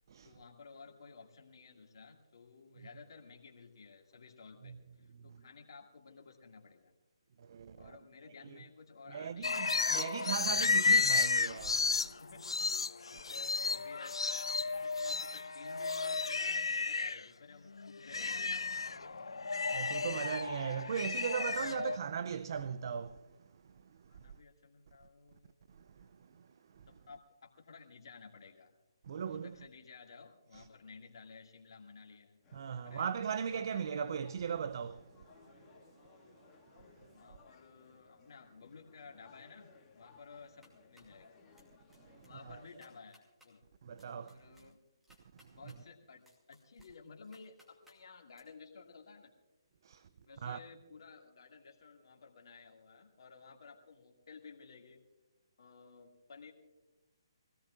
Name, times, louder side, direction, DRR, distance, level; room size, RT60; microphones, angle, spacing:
voice 1, 0.2-6.9 7.8-9.8 10.6-10.8 12.1-12.7 13.6-14.2 14.7-18.5 24.1-25.6 26.9-28.7 29.3-32.4 32.8-33.1 33.5-33.9 37.1-41.4 42.2-43.6 44.2-44.8 45.5-49.3 50.3-55.0 55.6-56.5, left 4 dB, 60° left, 2.2 m, -55 dB
voice 2, 7.4-7.9 8.5-8.6 9.1-12.2 13.4-13.5 19.2-23.2 23.9-24.0 25.8-26.1 26.3-26.5 26.7-26.9 29.1-29.5 30.5-30.6 32.5-35.1 42.2-42.6 43.8-44.4 45.4-45.5 49.8-50.1 50.4-50.6, right 7 dB, 50° right, 0.5 m, -39 dB
sound 1, 9.4-17.2 17.7-22.0, left 4 dB, 80° left, 0.5 m, -33 dB
sound 2, 32.4-43.0, left 4 dB, 20° left, 2.0 m, -62 dB
sound 3, 40.4-41.2 41.6-42.0 42.2-42.3 42.7-43.5 44.0-45.8 46.2-48.0 48.3-48.4, left 1 dB, 5° right, 2.6 m, -65 dB
24.5 x 17.0 x 2.5 m
figure-of-eight pair, 145°, 3 cm